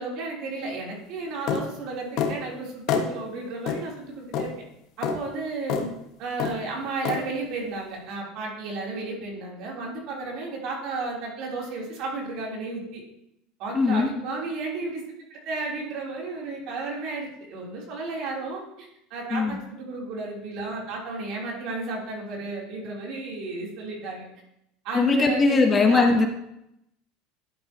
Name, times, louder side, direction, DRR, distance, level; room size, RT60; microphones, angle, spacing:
voice 1, 0.0-4.5 5.0-5.9 6.2-13.0 13.6-15.0 15.3-24.2 24.8-26.3, right 3 dB, 60° right, -2 dB, 3.3 m, -33 dB
sound 1, 1.5-1.7 2.2-2.4 2.9-3.1 3.7-3.8 4.3-4.5 5.0-5.2 5.7-5.9 6.4-6.6 7.0-7.2, left 7 dB, 55° left, 1.2 m, -26 dB
voice 2, 13.7-14.1 19.3-19.6 24.9-26.3, left 4 dB, 20° left, 5 dB, 0.9 m, -20 dB
11.5 x 7.9 x 2.9 m, 0.81 s
supercardioid pair, 135°, 0 cm